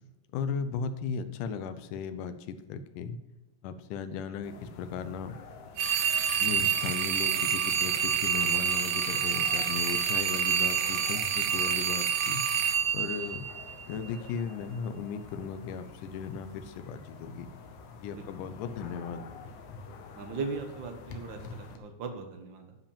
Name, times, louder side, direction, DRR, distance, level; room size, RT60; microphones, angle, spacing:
voice 1, 0.3-3.2 3.6-5.4 6.4-12.4 12.9-13.5 13.9-17.5 18.0-19.3, left 6 dB, 90° left, 11 dB, 2.3 m, -36 dB
sound 1, 4.4-21.8, left 4 dB, 70° left, 2.2 m, -48 dB
sound 2, 5.8-14.0, right 8 dB, 90° right, 1.3 m, -28 dB
voice 2, 20.1-22.8, right 4 dB, 65° right, 5 dB, 1.2 m, -39 dB
10.5 x 5.1 x 7.1 m, 1.0 s
omnidirectional pair, 3.6 m